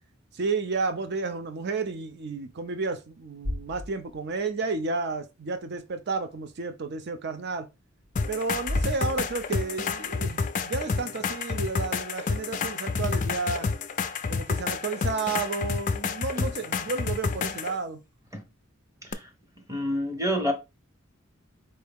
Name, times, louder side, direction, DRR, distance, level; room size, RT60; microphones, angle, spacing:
voice 1, 0.3-7.7 8.3-13.7 14.3-18.0, right 4 dB, 55° right, 0.5 m, -31 dB
sound 1, 3.4-4.4 4.8-4.9 8.0-10.1, left 1 dB, 70° right, 1.1 m, -35 dB
sound 2, 8.2-17.8 19.1-19.2, left 5 dB, 40° left, 0.4 m, -29 dB
voice 2, 19.7-20.5, equal, 15° right, 0.9 m, -28 dB
4.5 x 2.7 x 3.4 m
head